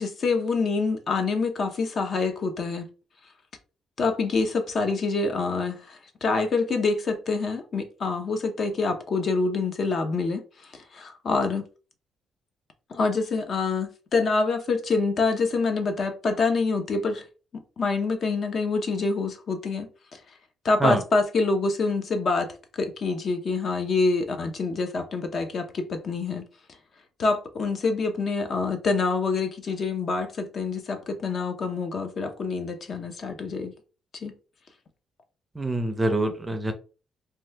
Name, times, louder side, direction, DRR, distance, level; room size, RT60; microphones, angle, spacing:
voice 1, 0.0-2.9 4.0-11.7 12.9-17.2 17.5-20.2 20.6-26.4 27.2-33.7 34.2-34.3, left 4 dB, 50° left, 0.6 m, -26 dB
voice 2, 35.6-36.7, right 2 dB, 15° right, 0.5 m, -24 dB
2.9 x 2.3 x 3.3 m
cardioid pair, 120°, 0 cm